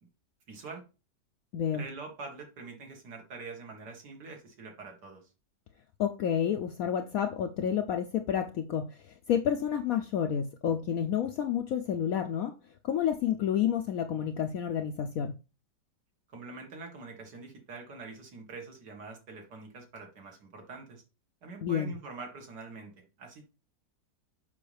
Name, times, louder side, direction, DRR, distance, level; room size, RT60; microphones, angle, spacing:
voice 1, 0.5-0.8 1.7-5.3 16.3-21.0 21.4-23.4, right 3 dB, 70° right, 2.3 m, -45 dB
voice 2, 1.5-1.8 6.0-12.5 12.8-15.4 21.6-21.9, left 9 dB, 70° left, 0.9 m, -30 dB
7.0 x 5.3 x 3.3 m
omnidirectional pair, 1.9 m